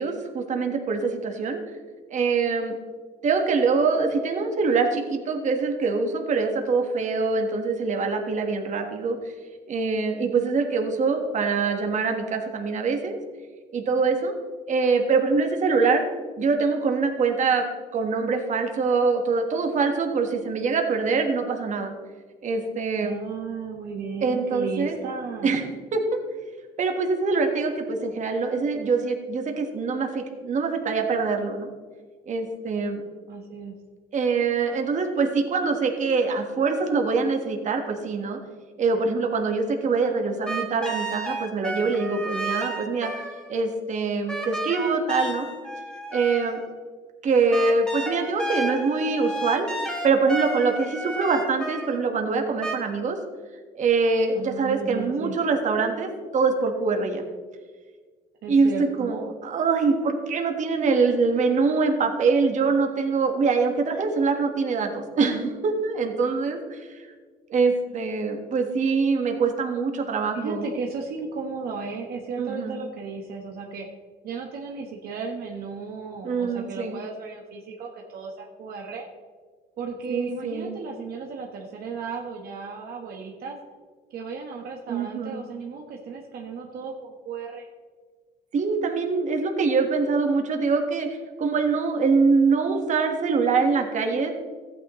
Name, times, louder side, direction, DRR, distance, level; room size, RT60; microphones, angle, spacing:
voice 1, 0.0-1.6 2.1-2.8 3.2-9.2 9.7-13.2 13.7-14.3 14.7-16.0 16.4-17.6 17.9-21.9 22.4-23.2 24.2-25.0 25.4-25.6 25.9-26.0 26.8-31.7 32.3-33.0 34.1-38.4 38.8-43.1 43.5-45.5 46.1-46.6 47.2-49.7 50.0-53.2 53.7-57.2 58.5-66.8 67.5-70.6 72.4-72.8 76.2-77.0 80.1-80.8 84.9-85.4 88.5-91.1 91.4-94.3, right 4 dB, 45° right, 4 dB, 1.4 m, -24 dB
voice 2, 23.0-25.5 33.3-33.7 54.3-55.4 58.4-59.1 70.3-73.9 74.2-79.1 79.8-83.6 84.1-87.7, right 4 dB, 65° right, 1 dB, 1.2 m, -35 dB
sound 1, 40.5-43.6 44.3-46.8 47.5-52.1 52.6-52.7, right 2 dB, 5° left, 1.6 m, -32 dB
14.0 x 9.2 x 3.1 m, 1.5 s
cardioid pair, 110°, 17 cm